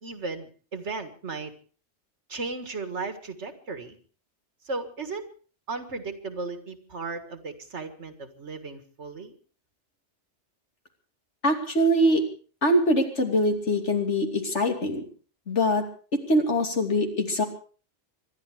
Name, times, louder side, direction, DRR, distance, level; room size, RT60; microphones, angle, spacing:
voice 1, 0.0-1.5 2.3-4.0 4.7-5.3 5.7-9.3, right 3 dB, 75° right, 9 dB, 2.1 m, -35 dB
voice 2, 11.4-12.2 12.6-15.0 15.5-15.8 16.3-17.4, equal, 80° left, 4 dB, 3.2 m, -23 dB
25.5 x 11.5 x 4.9 m, 0.40 s
omnidirectional pair, 1.2 m